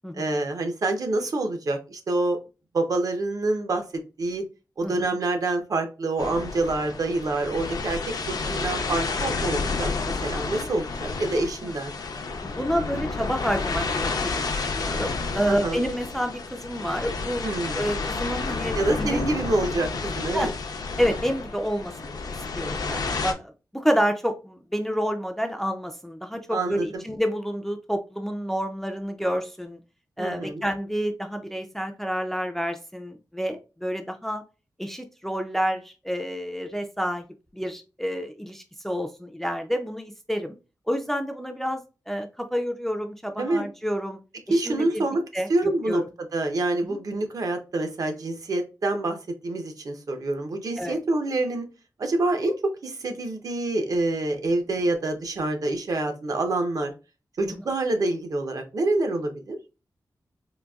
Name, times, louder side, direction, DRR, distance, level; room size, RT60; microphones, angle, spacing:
voice 1, 0.1-2.4 2.7-3.8 4.2-4.4 4.8-8.0 8.3-9.9 10.2-11.9 15.5-15.8 17.4-17.9 18.8-20.5 26.5-27.0 30.2-30.6 43.4-43.6 44.5-45.2 45.5-46.0 46.3-49.2 49.4-51.7 52.0-56.9 57.4-59.6, right 2 dB, 55° right, 5 dB, 0.6 m, -26 dB
voice 2, 4.8-5.2 8.4-8.7 11.6-11.7 12.4-19.3 20.3-20.5 21.0-22.2 22.5-29.8 30.2-34.4 34.8-37.2 37.5-40.5 40.9-44.2 44.5-45.1 45.3-46.1 46.8-47.0 50.8-51.0 57.5-57.6, equal, 5° left, 5 dB, 0.3 m, -29 dB
sound 1, 6.2-23.3, left 4 dB, 65° left, 0.5 m, -30 dB
3.9 x 2.5 x 2.3 m, 0.30 s
wide cardioid pair, 170°, 7 cm